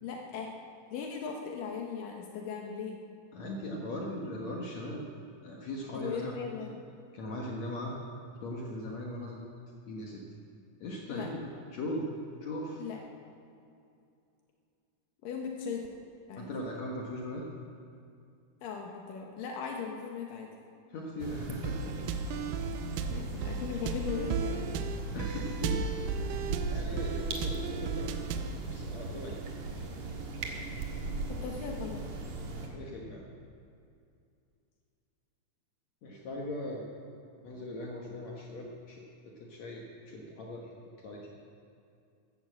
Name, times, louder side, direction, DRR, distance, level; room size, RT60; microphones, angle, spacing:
voice 1, 0.0-0.5 0.9-3.0 5.9-6.8 11.1-11.3 12.8-13.0 15.2-15.9 16.3-16.5 18.6-20.5 23.1-24.7 31.3-32.2, left 6 dB, 80° left, 1 dB, 2.8 m, -38 dB
voice 2, 3.3-5.0 5.4-6.3 7.1-7.9 8.4-9.5 9.9-10.2 10.8-11.5 11.7-12.1 12.4-12.8 16.4-17.4 20.9-22.2 25.1-25.9 26.2-26.4 26.7-28.1 28.7-29.4 29.7-29.9 32.7-33.3 36.0-36.9 37.4-40.7 41.0-41.2, left 1 dB, 60° left, -1 dB, 2.4 m, -39 dB
sound 1, 21.2-32.7, right 3 dB, 60° right, 2.8 m, -38 dB
sound 2, 21.6-28.6, right 5 dB, 85° right, 2.4 m, -35 dB
14.0 x 12.0 x 7.5 m, 2.5 s
omnidirectional pair, 3.9 m